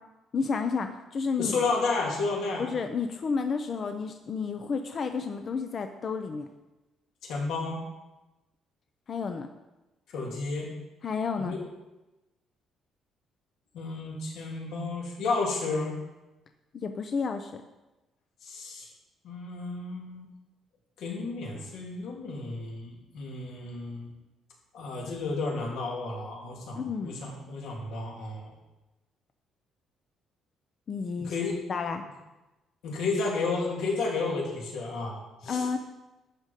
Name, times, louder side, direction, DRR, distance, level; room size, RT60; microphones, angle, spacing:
voice 1, 0.3-1.6 2.6-6.5 9.1-9.5 11.0-11.6 16.7-17.6 26.8-27.1 30.9-31.3 31.7-32.0 35.5-35.8, left 5 dB, 35° left, 7 dB, 0.6 m, -31 dB
voice 2, 1.4-2.7 7.2-7.8 10.1-10.7 11.4-11.6 13.7-15.9 18.4-18.9 19.2-20.3 21.0-24.1 24.7-28.5 31.2-31.7 32.8-35.7, left 3 dB, 75° left, -2 dB, 3.3 m, -32 dB
12.0 x 5.1 x 7.5 m, 1.0 s
cardioid pair, 160°, 0 cm